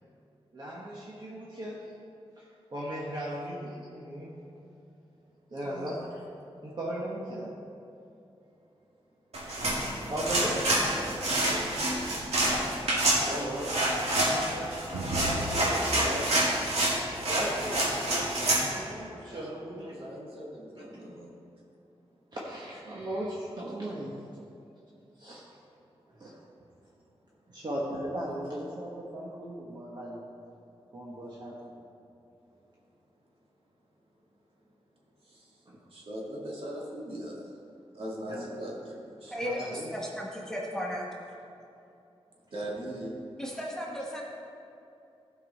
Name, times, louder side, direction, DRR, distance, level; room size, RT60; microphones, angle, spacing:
voice 1, 0.5-1.8 2.4-4.3 5.5-6.2 6.6-7.5 10.1-11.8 14.3-14.8 15.0-16.2 17.3-19.9 22.3-24.1 25.2-25.4 26.1-26.4 27.5-30.2 30.9-31.8 35.7-35.8 38.3-38.4 39.4-39.9, right 1 dB, 45° right, -5 dB, 1.3 m, -37 dB
voice 2, 5.5-6.1 13.2-13.8 15.9-16.4 19.3-21.3 35.2-35.6 35.9-37.5 37.9-39.3 42.5-43.2, equal, 65° right, -4 dB, 2.0 m, -39 dB
sound 1, 9.3-18.6, right 1 dB, 90° right, 2.3 m, -27 dB
voice 3, 39.3-41.1 43.4-44.2, equal, 5° left, -3 dB, 1.2 m, -35 dB
15.5 x 5.5 x 4.1 m, 2.7 s
wide cardioid pair, 155°, 10 cm